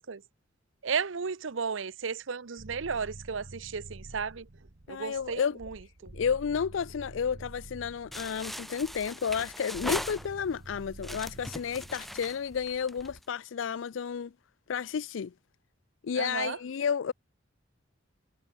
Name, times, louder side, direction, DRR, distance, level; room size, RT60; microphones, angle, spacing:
voice 1, 0.8-4.5 4.9-5.8 16.1-16.6, right 5 dB, 90° right, 0.8 m, -34 dB
sound 1, 2.6-13.2, right 1 dB, 55° right, 1.2 m, -49 dB
voice 2, 4.9-5.6 6.1-14.3 14.7-15.3 16.0-17.1, left 7 dB, 80° left, 0.4 m, -31 dB
sound 2, 8.1-10.6 11.0-13.2, equal, ahead, 1.3 m, -39 dB
head